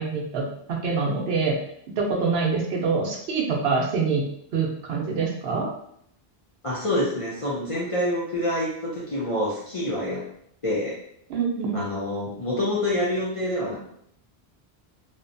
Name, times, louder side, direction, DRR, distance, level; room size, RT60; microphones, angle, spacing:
voice 1, 0.0-1.6 2.0-4.2 4.5-5.7 11.3-11.8, right 4 dB, 70° right, 0 dB, 0.8 m, -25 dB
voice 2, 6.6-10.2 10.6-11.0 11.7-13.8, left 1 dB, 45° left, -6 dB, 0.5 m, -27 dB
2.9 x 2.1 x 2.5 m, 0.70 s
omnidirectional pair, 1.1 m